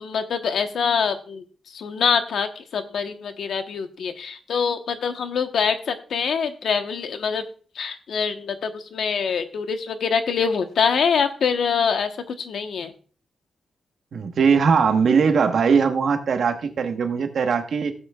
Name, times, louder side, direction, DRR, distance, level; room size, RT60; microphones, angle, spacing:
voice 1, 0.0-1.4 1.7-7.4 7.7-12.9, left 6 dB, 75° left, 7 dB, 1.1 m, -24 dB
voice 2, 14.1-17.9, right 6 dB, 65° right, 7 dB, 1.2 m, -20 dB
17.5 x 7.8 x 2.3 m, 0.41 s
wide cardioid pair, 115°, 0 cm